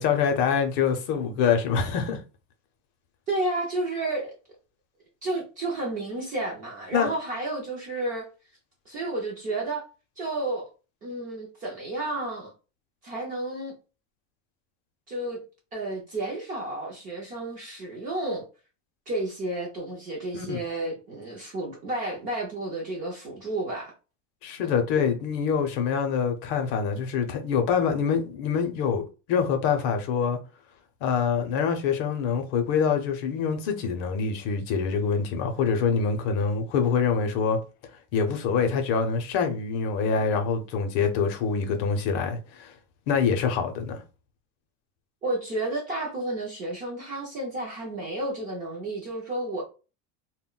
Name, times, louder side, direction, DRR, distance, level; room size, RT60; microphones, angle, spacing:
voice 1, 0.0-2.2 6.9-7.1 20.3-20.6 24.4-30.4 31.0-37.6 38.1-42.7 43.1-44.0, left 6 dB, 50° left, 0.6 m, -25 dB
voice 2, 3.3-4.4 5.2-8.3 8.9-9.8 10.2-10.7 11.0-12.5 13.0-13.7 15.1-15.4 15.7-18.4 19.1-23.9 24.6-24.7 45.2-49.6, right 2 dB, 25° right, 0.3 m, -31 dB
2.1 x 2.1 x 3.7 m
cardioid pair, 180°, 40 cm